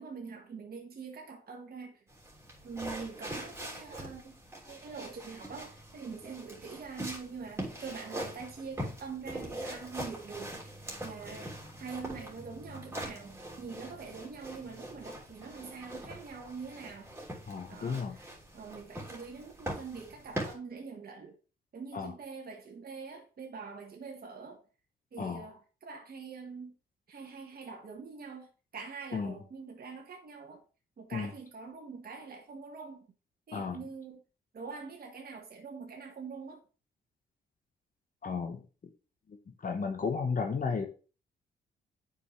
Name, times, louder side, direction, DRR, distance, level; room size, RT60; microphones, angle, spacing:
voice 1, 0.0-2.0 2.6-4.4 4.7-17.1 17.7-21.4 21.7-24.6 25.1-26.7 27.1-30.6 31.0-33.1 33.5-34.2 34.5-36.6, right 5 dB, 50° right, 1.5 m, -44 dB
sound 1, 2.1-20.5, right 1 dB, 10° right, 3.1 m, -43 dB
voice 2, 17.5-18.2 21.9-22.1 25.2-25.4 29.1-29.3 31.1-31.3 33.5-33.8 38.2-38.6 39.6-40.9, left 5 dB, 45° left, 1.1 m, -33 dB
8.2 x 5.3 x 3.2 m
supercardioid pair, 55°, 20 cm